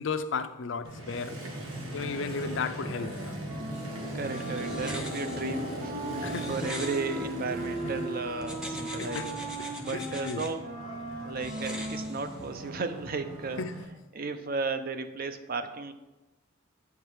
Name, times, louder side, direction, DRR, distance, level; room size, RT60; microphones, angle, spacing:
voice 1, 0.0-1.4 1.9-3.4 6.2-6.6 9.0-9.3 9.6-10.4 13.6-13.7, left 5 dB, 65° left, 0.4 m, -34 dB
Motorcycle, 0.8-13.9, right 1 dB, 85° right, 1.6 m, -39 dB
Wind instrument woodwind instrument, 1.9-13.9, right 1 dB, 70° right, 2.9 m, -40 dB
sound 1, 3.7-7.9 8.4-10.5 11.4-12.7, left 1 dB, 5° right, 0.8 m, -44 dB
voice 2, 4.1-9.4 9.8-10.7 11.2-13.6 14.1-15.9, right 4 dB, 45° right, 0.5 m, -34 dB
8.5 x 4.7 x 4.8 m
head